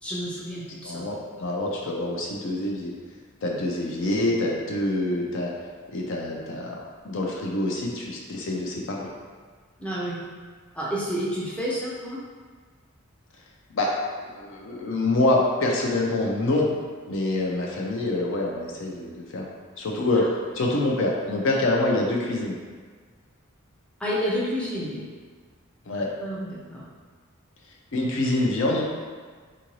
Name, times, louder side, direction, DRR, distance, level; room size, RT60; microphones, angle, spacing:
voice 1, 0.0-1.0 9.8-10.2 10.7-12.2 24.0-25.0 26.2-26.8, equal, 5° left, -7 dB, 0.5 m, -29 dB
voice 2, 0.8-2.9 3.4-5.5 5.9-6.8 7.0-9.1 13.7-14.0 14.2-16.7 17.1-19.5 19.8-22.6 25.9-26.1 27.9-28.8, left 2 dB, 60° left, -1 dB, 0.5 m, -26 dB
3.7 x 2.6 x 3.0 m, 1.5 s
head